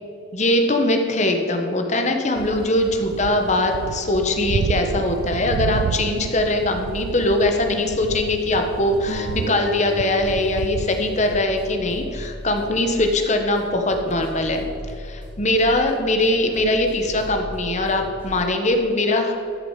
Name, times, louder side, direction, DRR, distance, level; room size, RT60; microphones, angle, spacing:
voice 1, 0.3-14.6 15.0-19.3, left 1 dB, 35° left, 4 dB, 1.3 m, -21 dB
sound 1, 2.4-11.4, right 6 dB, 80° right, 0.3 m, -30 dB
sound 2, 9.1-12.7, right 1 dB, 65° left, 2.6 m, -36 dB
sound 3, 10.2-18.5, equal, 10° right, 2.5 m, -38 dB
13.5 x 6.8 x 7.4 m, 2.6 s
head